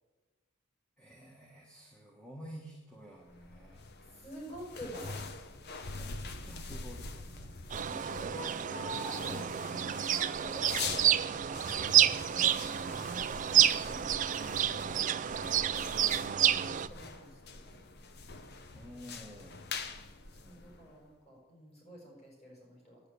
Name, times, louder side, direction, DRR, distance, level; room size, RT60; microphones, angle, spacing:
voice 1, 1.0-3.8 5.9-7.6 13.1-13.8 18.7-19.6, equal, 5° left, -2 dB, 1.3 m, -51 dB
sound 1, 3.2-21.1, left 4 dB, 50° left, 0.8 m, -44 dB
voice 2, 4.1-5.3 7.8-12.6 13.9-16.1 16.7-17.9 20.3-23.0, equal, 30° left, -3 dB, 5.3 m, -48 dB
sound 2, 7.7-16.9, right 10 dB, 35° right, 0.3 m, -29 dB
9.7 x 8.2 x 8.3 m, 1.2 s
head